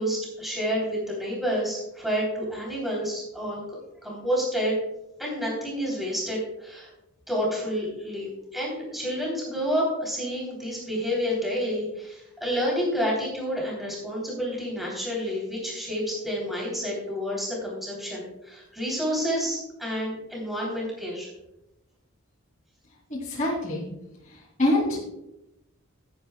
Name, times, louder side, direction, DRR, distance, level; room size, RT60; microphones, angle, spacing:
voice 1, 0.0-3.6 4.0-4.8 5.2-6.9 7.3-21.3, equal, ahead, -4 dB, 3.3 m, -29 dB
voice 2, 23.1-23.9 24.2-25.1, left 1 dB, 40° left, -6 dB, 2.7 m, -26 dB
17.5 x 9.4 x 2.3 m, 0.90 s
head